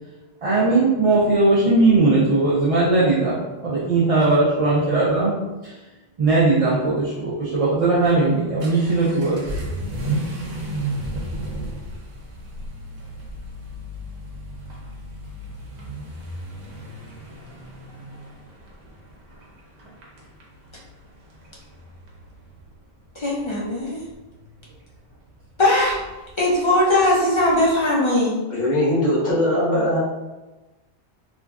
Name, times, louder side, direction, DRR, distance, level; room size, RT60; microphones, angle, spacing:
voice 1, 0.4-5.3 5.6-5.7 6.2-9.6, right 3 dB, 50° right, -8 dB, 0.4 m, -19 dB
Vehicle / Accelerating revving vroom, 8.0-27.8, right 1 dB, 85° right, 1.0 m, -35 dB
voice 2, 23.2-24.0 25.6-26.0 26.4-28.4, left 1 dB, 40° left, -6 dB, 0.4 m, -19 dB
voice 3, 28.5-30.0, left 1 dB, 60° left, -8 dB, 1.4 m, -20 dB
3.0 x 2.5 x 2.3 m, 1.1 s
omnidirectional pair, 1.1 m